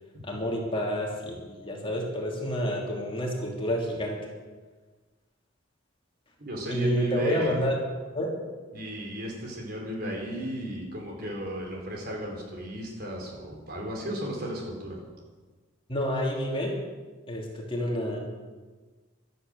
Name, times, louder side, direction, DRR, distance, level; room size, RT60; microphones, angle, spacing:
voice 1, 0.2-4.2 6.7-7.7 8.1-8.4 15.9-16.7 17.3-18.2, equal, 25° left, -1 dB, 2.9 m, -29 dB
voice 2, 6.4-7.6 8.7-15.0, equal, 50° right, 0 dB, 4.4 m, -35 dB
15.5 x 12.5 x 6.8 m, 1.3 s
head